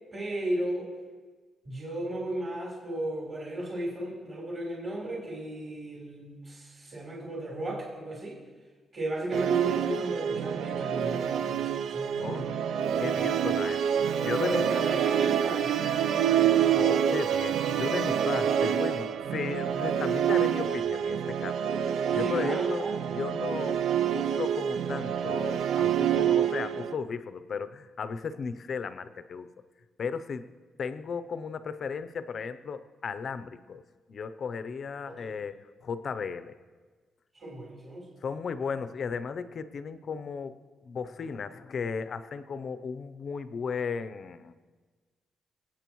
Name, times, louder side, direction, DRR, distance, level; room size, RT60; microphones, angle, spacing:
voice 1, 0.1-0.9 1.6-8.4 8.9-12.5 14.4-15.9 22.1-23.0 35.1-35.3 37.3-38.1, right 1 dB, 30° right, -5 dB, 4.0 m, -35 dB
Musical instrument, 9.3-26.9, right 9 dB, 80° right, 0.5 m, -27 dB
voice 2, 12.2-12.5 13.0-14.0 14.2-14.6 16.8-21.6 22.1-23.8 24.1-29.5 30.0-30.5 30.8-33.8 34.1-36.6 38.2-40.6 40.8-44.5, left 5 dB, 40° left, 12 dB, 0.6 m, -35 dB
26.5 x 8.9 x 3.1 m, 1.4 s
cardioid pair, 170°, 0 cm